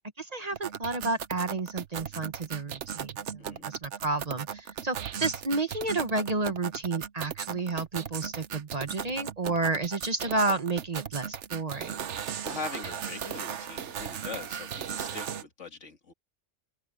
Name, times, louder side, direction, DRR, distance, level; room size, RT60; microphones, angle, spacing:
voice 1, 0.2-11.9, right 3 dB, 35° right, 1.2 m, -31 dB
sound 1, 0.5-15.4, right 8 dB, 75° right, 1.2 m, -37 dB
voice 2, 12.4-16.1, left 4 dB, 85° left, 2.5 m, -41 dB
open air
omnidirectional pair, 1.2 m